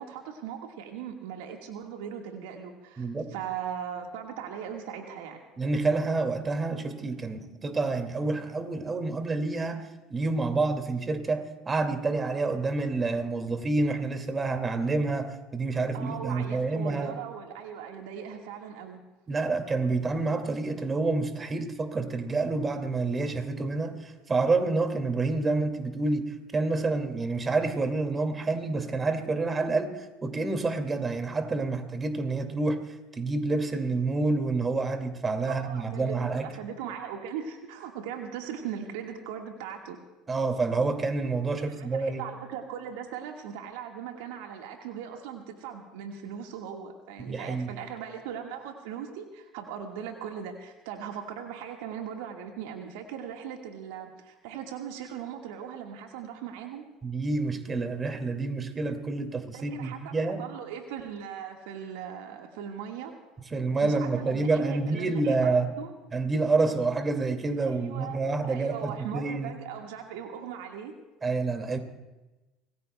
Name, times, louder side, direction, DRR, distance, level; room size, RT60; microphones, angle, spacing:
voice 1, 0.0-5.4 15.9-19.0 35.4-40.0 41.5-56.9 59.5-63.1 63.8-65.9 67.6-68.2 68.4-70.9, right 8 dB, 75° right, 3 dB, 1.6 m, -39 dB
voice 2, 3.0-3.3 5.6-9.8 10.1-17.2 19.3-32.8 33.1-36.5 40.3-42.2 47.3-47.7 57.0-60.4 63.5-65.7 66.1-69.6 71.2-71.8, right 3 dB, 25° right, 6 dB, 2.2 m, -28 dB
26.0 x 19.0 x 2.2 m, 1.1 s
hypercardioid pair, 70°, 0 cm